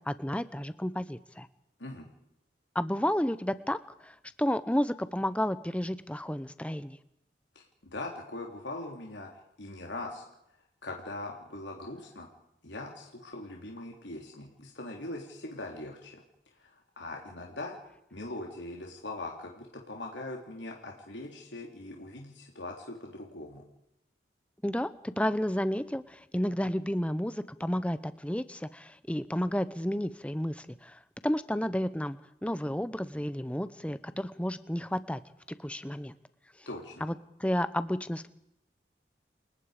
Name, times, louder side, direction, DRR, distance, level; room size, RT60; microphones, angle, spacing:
voice 1, 0.1-1.5 2.7-7.0 24.6-35.2 35.5-36.1 37.0-37.1 37.4-38.3, equal, 5° left, 14 dB, 0.8 m, -31 dB
voice 2, 7.5-9.3 9.6-10.3 10.8-12.3 12.6-16.2 16.6-17.7 18.1-23.6 36.6-37.1, left 2 dB, 85° left, 0 dB, 3.3 m, -41 dB
29.5 x 18.5 x 5.1 m, 0.84 s
head